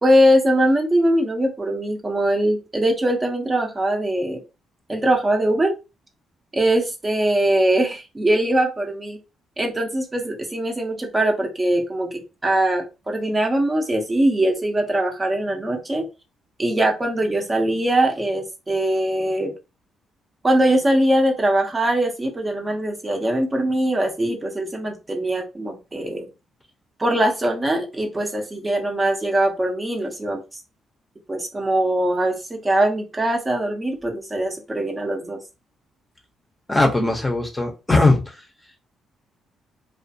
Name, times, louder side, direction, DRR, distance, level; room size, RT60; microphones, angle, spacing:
voice 1, 0.0-4.4 4.9-5.7 6.5-9.2 9.6-16.1 16.6-19.5 20.4-26.3 27.0-30.4 31.3-35.4, right 1 dB, 20° right, 2 dB, 0.6 m, -21 dB
voice 2, 36.7-38.4, left 2 dB, 15° left, 3 dB, 0.6 m, -19 dB
2.3 x 2.2 x 2.6 m, 0.28 s
cardioid pair, 90°, 0 cm